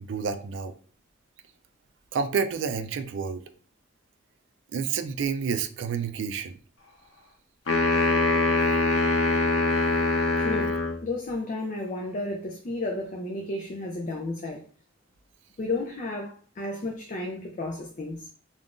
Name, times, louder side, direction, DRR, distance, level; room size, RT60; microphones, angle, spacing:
voice 1, 0.1-0.7 2.1-3.4 4.7-6.6, right 6 dB, 65° right, 0.3 m, -29 dB
sound 1, 7.7-11.0, left 2 dB, 90° left, 0.7 m, -23 dB
voice 2, 10.4-14.6 15.6-18.3, left 2 dB, 40° left, 0.4 m, -32 dB
3.5 x 2.4 x 2.4 m
head